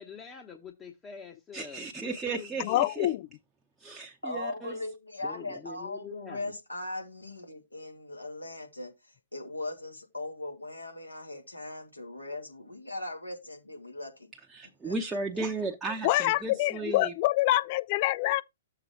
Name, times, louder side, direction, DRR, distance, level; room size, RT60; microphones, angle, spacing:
voice 1, 0.0-2.9 5.2-6.5, left 6 dB, 20° left, 1.0 m, -45 dB
voice 2, 1.5-3.1 3.8-4.7 14.5-17.1, right 3 dB, 10° right, 0.8 m, -35 dB
voice 3, 2.6-3.2 16.0-18.4, left 16 dB, 40° left, 0.3 m, -26 dB
voice 4, 4.2-14.3 14.8-14.9, left 2 dB, 85° left, 2.2 m, -39 dB
6.9 x 3.8 x 5.8 m
figure-of-eight pair, 115°, 0 cm